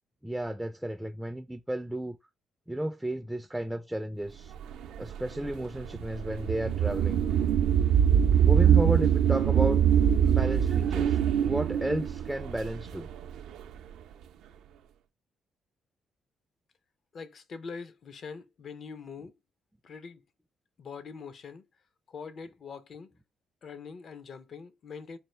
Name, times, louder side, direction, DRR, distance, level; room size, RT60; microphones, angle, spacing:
voice 1, 0.2-2.2 2.7-4.5 5.0-7.2 8.4-9.9 10.2-13.1, right 1 dB, 5° right, 0.3 m, -33 dB
sound 1, 4.6-13.6, right 9 dB, 85° right, 0.4 m, -23 dB
voice 2, 17.1-19.3 19.8-20.2 20.8-21.6 22.1-23.1 23.6-25.2, left 5 dB, 55° left, 0.5 m, -43 dB
4.3 x 2.4 x 3.1 m
cardioid pair, 90°, 0 cm